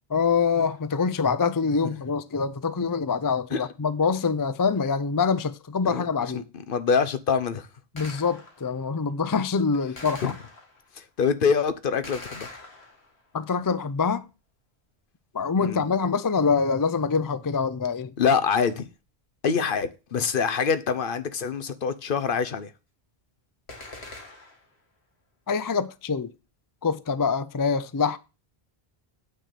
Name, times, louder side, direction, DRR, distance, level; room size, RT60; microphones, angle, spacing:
voice 1, 0.1-6.5 7.9-10.3 13.3-14.3 15.3-18.1 25.5-26.3 26.8-28.2, left 5 dB, 35° left, 0.3 m, -25 dB
voice 2, 6.3-7.7 10.2-10.3 11.2-12.5 15.6-15.8 18.2-18.9 19.4-22.7, left 6 dB, 55° left, 0.9 m, -25 dB
Gunshot gunfire, 8.0-8.8 10.0-10.9 12.0-13.3 23.7-24.8, left 2 dB, 75° left, 2.3 m, -43 dB
9.2 x 4.5 x 6.7 m
omnidirectional pair, 1.1 m